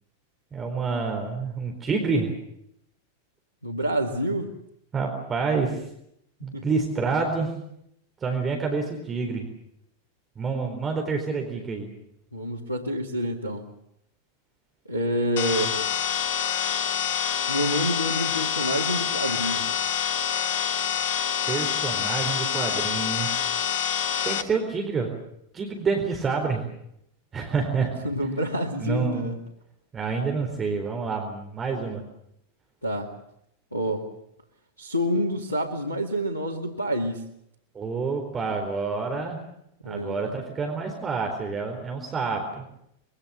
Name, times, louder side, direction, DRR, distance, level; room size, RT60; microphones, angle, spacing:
voice 1, 0.5-2.3 4.9-5.9 6.4-7.5 8.2-9.5 10.4-11.9 21.5-23.3 24.2-25.1 25.5-26.6 27.3-28.0 28.8-29.3 29.9-32.0 37.7-39.4 39.8-42.7, right 4 dB, 20° right, 3 dB, 4.2 m, -28 dB
voice 2, 3.6-4.5 6.5-6.7 12.3-13.6 14.9-15.8 17.5-19.7 28.0-29.4 32.8-33.1 33.7-34.1 34.8-37.2 39.8-40.4, equal, 85° left, 4 dB, 2.1 m, -28 dB
sound 1, 15.4-24.4, left 9 dB, 55° left, 1.3 m, -26 dB
25.5 x 22.5 x 7.1 m, 0.75 s
figure-of-eight pair, 90°, 0 cm